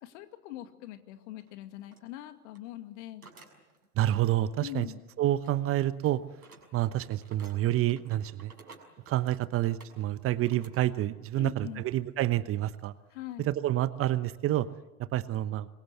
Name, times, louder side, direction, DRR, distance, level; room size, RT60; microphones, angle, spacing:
voice 1, 0.0-3.3 4.6-5.0 11.4-11.9 13.1-13.5, left 14 dB, 50° left, 8 dB, 2.4 m, -42 dB
sound 1, 1.4-1.5 1.9-2.0 2.4-2.7 3.2-4.2 4.4-5.1 5.4-11.2 11.5-11.8 12.5-12.6 13.2-13.5, right 4 dB, 80° right, 6.2 m, -55 dB
voice 2, 4.0-4.9 5.2-6.2 6.7-8.5 9.1-12.9 13.5-14.7 15.1-15.7, right 14 dB, 30° right, 15 dB, 1.1 m, -28 dB
27.5 x 23.0 x 8.1 m, 1.0 s
figure-of-eight pair, 85°, 44 cm